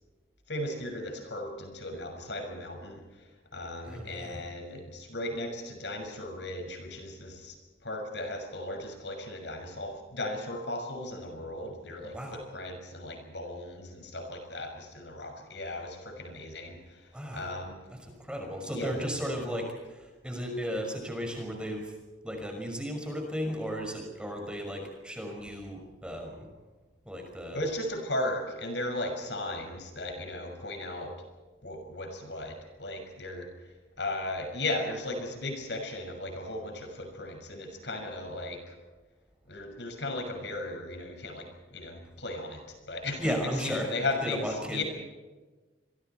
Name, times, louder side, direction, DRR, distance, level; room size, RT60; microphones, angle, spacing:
voice 1, 0.5-7.6 7.8-17.8 18.6-19.1 27.5-31.1 31.6-38.7 39.5-44.8, left 1 dB, 70° left, 4 dB, 6.3 m, -36 dB
voice 2, 3.8-4.5 12.1-12.4 17.1-17.5 17.9-21.9 22.2-26.5 27.1-27.7 43.2-44.8, equal, 5° right, 2 dB, 5.9 m, -35 dB
30.0 x 23.5 x 4.6 m, 1.3 s
head